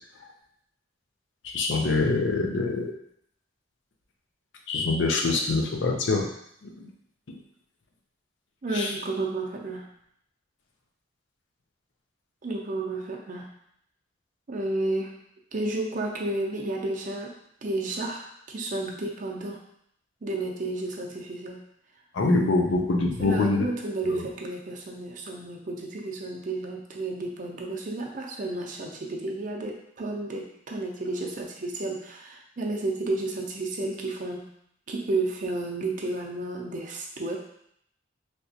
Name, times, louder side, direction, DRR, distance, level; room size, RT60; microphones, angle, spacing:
voice 1, 1.4-2.9 4.7-6.3 6.6-6.9 7.3-7.4 8.7-8.9 22.1-23.7 24.0-24.2, left 3 dB, 80° left, 2 dB, 0.5 m, -25 dB
voice 2, 8.6-9.9 12.4-13.5 14.5-15.1 15.5-17.3 17.6-19.6 20.2-21.6 23.2-34.5 34.9-37.4, right 2 dB, 45° right, 0 dB, 0.5 m, -32 dB
3.4 x 2.9 x 2.8 m, 0.72 s
head